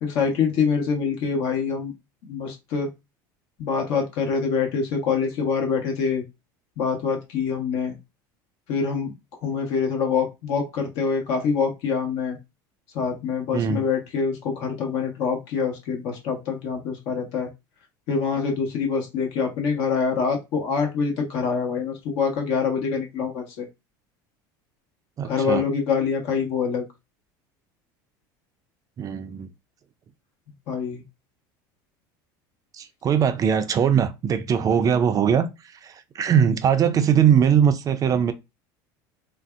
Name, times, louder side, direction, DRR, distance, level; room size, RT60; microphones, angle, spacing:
voice 1, 0.0-1.9 2.2-2.9 3.6-6.2 6.8-8.0 8.7-9.1 9.4-12.4 12.9-17.5 18.1-23.7 25.2-26.8 30.7-31.0, left 5 dB, 65° left, 1.2 m, -25 dB
voice 2, 13.5-13.9 25.2-25.6 29.0-29.5 32.7-38.3, right 8 dB, 35° right, 0.4 m, -21 dB
3.3 x 2.6 x 2.4 m
supercardioid pair, 105°, 11 cm